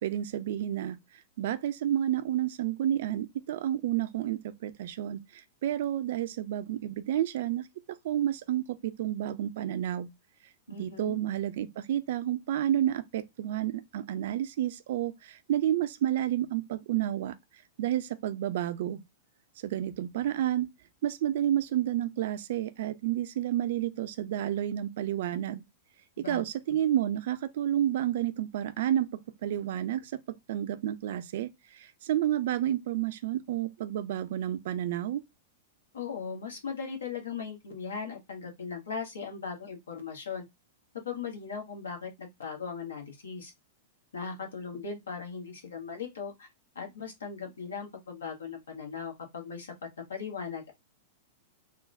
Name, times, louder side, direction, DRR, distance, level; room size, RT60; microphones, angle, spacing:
voice 1, 0.0-1.0 1.4-7.7 8.0-10.1 10.7-17.4 17.8-19.0 19.6-20.7 21.0-25.6 26.2-30.2 30.5-35.2, right 11 dB, 55° right, 0.4 m, -30 dB
voice 2, 10.7-11.2 26.2-26.4 26.7-26.8 35.9-40.4 40.9-43.5 44.1-46.5 46.7-49.7 50.1-50.7, left 6 dB, 70° left, 1.2 m, -38 dB
3.6 x 2.2 x 3.2 m
figure-of-eight pair, 100°, 0 cm